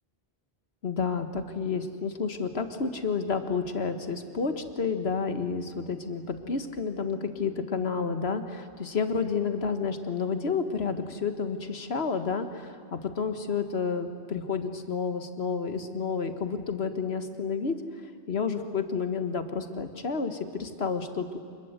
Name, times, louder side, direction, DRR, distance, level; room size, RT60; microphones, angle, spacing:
voice 1, 0.8-17.8 18.3-21.4, left 5 dB, 75° left, 8 dB, 1.7 m, -30 dB
26.5 x 21.0 x 8.1 m, 2.3 s
omnidirectional pair, 1.1 m